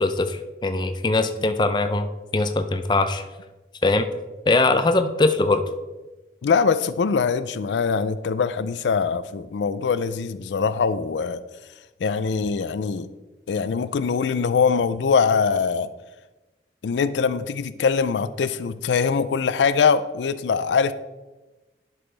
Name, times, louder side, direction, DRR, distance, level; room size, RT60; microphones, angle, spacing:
voice 1, 0.0-3.2 3.8-4.1 4.5-5.6, left 2 dB, 25° left, 8 dB, 0.4 m, -21 dB
voice 2, 6.4-11.4 12.0-13.1 13.5-15.9 16.8-20.9, left 5 dB, 85° left, 13 dB, 0.4 m, -22 dB
11.0 x 6.0 x 3.3 m, 1.1 s
head